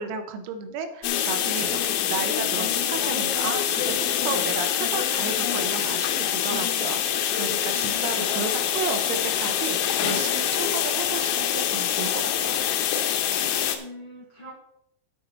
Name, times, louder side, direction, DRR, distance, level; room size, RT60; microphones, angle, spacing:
voice 1, 0.0-12.6, right 5 dB, 80° right, 7 dB, 3.7 m, -33 dB
sound 1, 1.0-13.8, left 10 dB, 90° left, 3.6 m, -25 dB
voice 2, 7.7-8.4 13.7-14.5, left 2 dB, 40° left, -5 dB, 2.1 m, -43 dB
9.6 x 8.5 x 4.5 m, 0.75 s
omnidirectional pair, 6.0 m